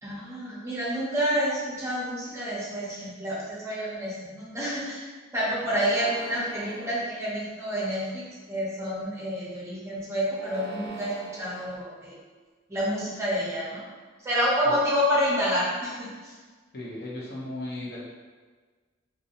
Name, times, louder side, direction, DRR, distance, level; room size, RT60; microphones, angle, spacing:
voice 1, 0.0-5.0 5.3-12.1 12.7-13.8 14.2-16.3, equal, 15° right, -7 dB, 0.6 m, -28 dB
sound 1, 5.5-7.0 7.7-8.3 10.2-11.7, right 2 dB, 55° right, 0.5 m, -42 dB
voice 2, 16.7-18.1, left 1 dB, 55° left, -6 dB, 0.7 m, -36 dB
2.7 x 2.2 x 2.6 m, 1.4 s
head